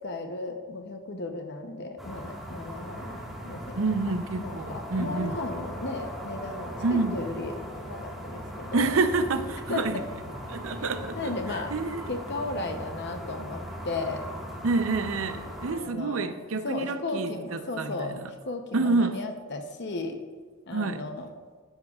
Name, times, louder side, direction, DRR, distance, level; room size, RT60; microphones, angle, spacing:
voice 1, 0.0-3.2 3.4-9.0 9.7-9.8 11.1-11.7 12.1-14.2 15.7-16.3 16.6-20.2 20.7-21.3, left 2 dB, 55° left, 5 dB, 0.8 m, -35 dB
sound 1, 2.0-15.7, equal, ahead, 1.6 m, -39 dB
voice 2, 3.8-5.3 6.8-7.2 8.7-10.0 10.5-12.1 14.6-18.3 18.7-19.2 20.7-21.0, right 3 dB, 70° right, 10 dB, 0.6 m, -28 dB
12.5 x 10.5 x 2.4 m, 1.4 s
head